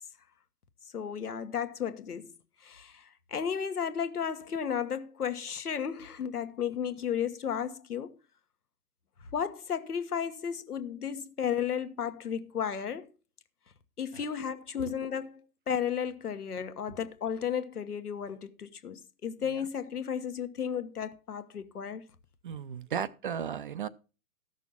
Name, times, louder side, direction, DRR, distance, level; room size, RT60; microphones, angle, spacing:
voice 1, 0.9-2.3 2.6-8.1 9.3-13.1 14.0-22.0, left 8 dB, 80° left, 1.3 m, -34 dB
voice 2, 22.4-23.9, right 8 dB, 35° right, 0.4 m, -35 dB
14.0 x 6.3 x 5.5 m
hypercardioid pair, 130°, 45 cm